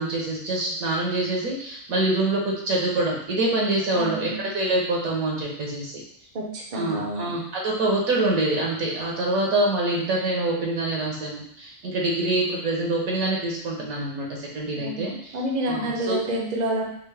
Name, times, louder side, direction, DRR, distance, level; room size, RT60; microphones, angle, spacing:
voice 1, 0.0-5.9 6.7-15.1 15.7-16.2, right 2 dB, 70° right, -2 dB, 1.3 m, -25 dB
voice 2, 3.9-4.4 6.3-7.3 14.7-15.1 15.3-16.8, right 1 dB, 45° right, -2 dB, 0.6 m, -28 dB
3.6 x 2.5 x 3.2 m, 0.70 s
omnidirectional pair, 1.6 m